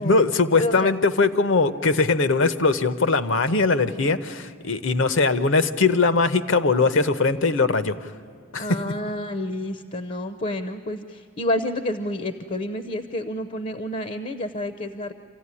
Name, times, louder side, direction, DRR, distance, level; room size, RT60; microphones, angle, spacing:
voice 1, 0.0-8.1 8.5-8.8, left 3 dB, 65° left, 12 dB, 0.8 m, -21 dB
voice 2, 0.6-0.9 8.6-15.1, left 1 dB, 35° left, 10 dB, 0.7 m, -29 dB
26.5 x 15.0 x 9.7 m, 2.4 s
head